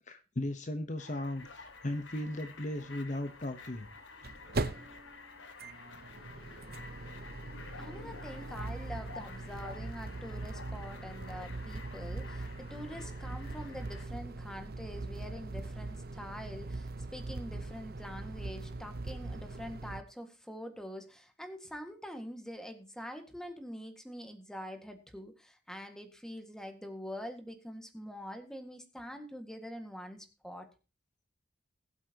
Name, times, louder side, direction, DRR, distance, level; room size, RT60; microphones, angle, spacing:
voice 1, 0.1-3.9, left 1 dB, 40° left, 9 dB, 1.0 m, -37 dB
sound 1, 1.0-14.1, left 4 dB, 80° left, 1.7 m, -50 dB
sound 2, 1.4-1.5 1.7-1.8 3.7-20.0, right 2 dB, 55° right, 0.8 m, -41 dB
voice 2, 7.8-30.7, equal, 5° left, 6 dB, 1.8 m, -45 dB
20.5 x 8.3 x 2.9 m, 0.32 s
head